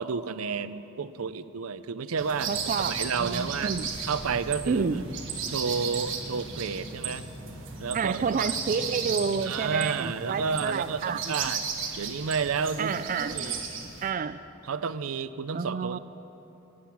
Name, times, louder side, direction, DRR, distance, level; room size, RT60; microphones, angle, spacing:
voice 1, 0.0-2.5 2.9-3.7 4.0-4.8 5.5-7.2 7.8-8.5 9.4-11.6 12.0-12.9 13.3-13.6 14.6-16.0, right 5 dB, 90° right, 14 dB, 0.5 m, -31 dB
sound 1, 2.2-14.1, right 6 dB, 65° right, 1.6 m, -35 dB
sound 2, 2.4-10.4, equal, 20° left, 4.5 m, -44 dB
voice 2, 2.5-3.9 4.7-5.2 7.9-11.4 12.8-13.4 14.0-14.4 15.5-16.0, right 5 dB, 40° right, 12 dB, 0.3 m, -29 dB
17.5 x 10.5 x 7.3 m, 3.0 s
head